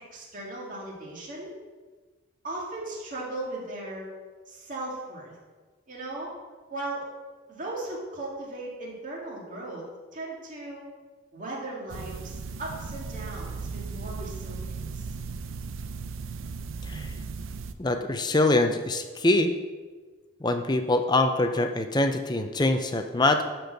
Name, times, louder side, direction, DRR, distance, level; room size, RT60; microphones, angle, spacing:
voice 1, 0.1-1.5 2.4-4.1 4.5-5.4 5.9-6.3 6.7-7.1 7.5-9.9 10.1-10.9 11.3-15.1, right 2 dB, 40° right, -3 dB, 2.2 m, -37 dB
sound 1, 11.9-17.7, right 4 dB, 80° right, 0.6 m, -36 dB
voice 2, 17.8-19.5 20.4-23.4, left 2 dB, 20° left, 7 dB, 0.5 m, -24 dB
11.5 x 4.5 x 6.5 m, 1.4 s
head